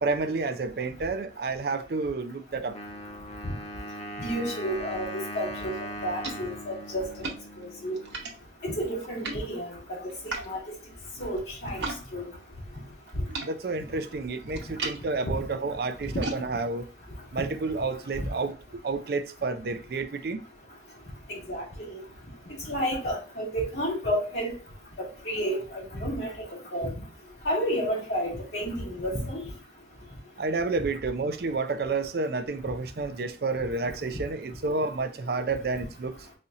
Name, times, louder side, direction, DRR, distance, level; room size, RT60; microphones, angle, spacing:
voice 1, 0.0-2.8 13.4-16.9 17.3-18.6 18.8-20.5 30.4-36.2, right 3 dB, 55° right, 0.4 m, -30 dB
Wind instrument woodwind instrument, 2.7-8.4, equal, 35° left, 0.6 m, -39 dB
voice 2, 4.2-7.1 7.6-8.0 8.6-10.1 10.5-10.6 11.2-11.9 12.1-12.3 15.2-15.4 18.2-18.3 21.3-21.6 21.9-22.0 22.7-24.5 25.0-26.3 26.7-26.9 27.4-29.4, equal, 65° left, 2.3 m, -31 dB
sound 1, 5.6-12.0 12.3-18.2, right 3 dB, 75° right, 1.0 m, -41 dB
4.2 x 2.8 x 3.5 m
head